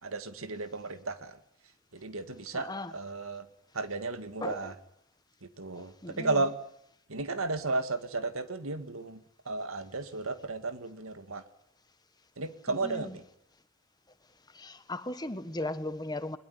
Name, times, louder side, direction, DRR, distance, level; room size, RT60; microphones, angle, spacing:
voice 1, 0.0-1.4 1.9-3.5 3.7-4.8 5.4-6.5 7.1-11.4 12.4-13.2, right 3 dB, 85° right, 2.0 m, -34 dB
voice 2, 2.5-2.9 4.4-4.7 5.7-6.4 12.8-13.1 14.5-16.4, left 2 dB, 20° left, 1.3 m, -37 dB
22.0 x 21.0 x 9.9 m
head